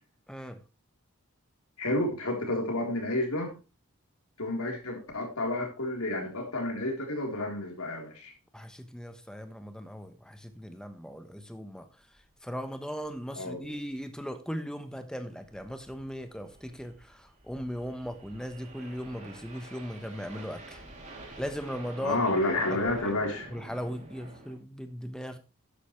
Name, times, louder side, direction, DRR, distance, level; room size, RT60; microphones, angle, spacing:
voice 1, 0.3-0.6 8.5-11.9 12.4-20.8 21.4-22.3 22.7-23.0 23.5-25.4, equal, 5° left, 1.1 m, -38 dB
voice 2, 1.8-3.6 4.4-8.3 13.4-13.7 22.0-23.5, left 1 dB, 80° left, 3.9 m, -30 dB
sound 1, 12.2-12.3 12.6-12.7 13.0-13.1 13.6-13.9 15.2-24.6, right 2 dB, 30° right, 3.0 m, -47 dB
12.5 x 10.0 x 3.3 m
head